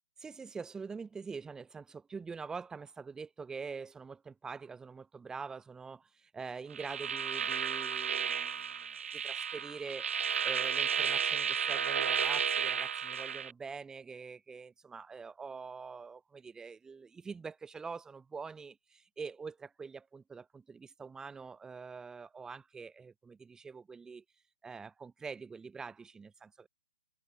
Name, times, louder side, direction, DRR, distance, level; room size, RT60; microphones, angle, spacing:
voice 1, 0.2-10.1 10.4-24.2 24.6-26.7, right 5 dB, 10° right, 1.7 m, -45 dB
sound 1, 6.7-13.5, right 7 dB, 65° right, 0.5 m, -33 dB
figure-of-eight pair, 130°, 7 cm